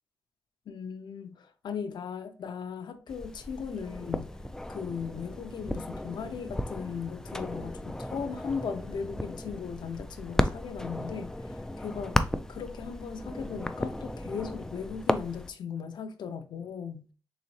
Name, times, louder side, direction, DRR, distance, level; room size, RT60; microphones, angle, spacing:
voice 1, 0.7-4.4 4.7-12.2 12.5-17.1, left 6 dB, 85° left, 0.5 m, -38 dB
sound 1, 3.1-15.5, left 1 dB, 10° left, 0.3 m, -34 dB
4.0 x 3.5 x 3.1 m
wide cardioid pair, 95°, 7 cm